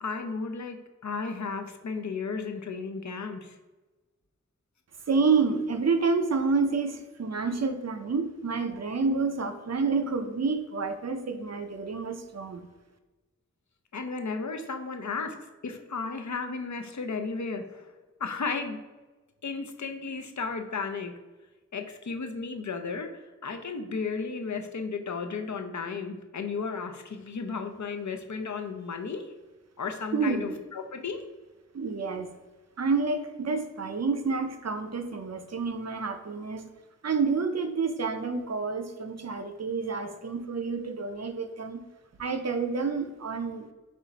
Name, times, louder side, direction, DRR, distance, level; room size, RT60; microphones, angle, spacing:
voice 1, 0.0-0.8 1.0-3.6 13.9-15.4 15.6-17.9 18.2-18.8 19.4-21.1 21.7-29.2 29.8-31.2, left 4 dB, 70° left, 6 dB, 0.5 m, -34 dB
voice 2, 5.1-12.7 30.1-30.6 31.7-32.3 32.8-36.7 37.0-41.8 42.2-43.7, right 4 dB, 60° right, 7 dB, 0.5 m, -29 dB
4.3 x 2.4 x 4.0 m, 1.2 s
wide cardioid pair, 45°, 29 cm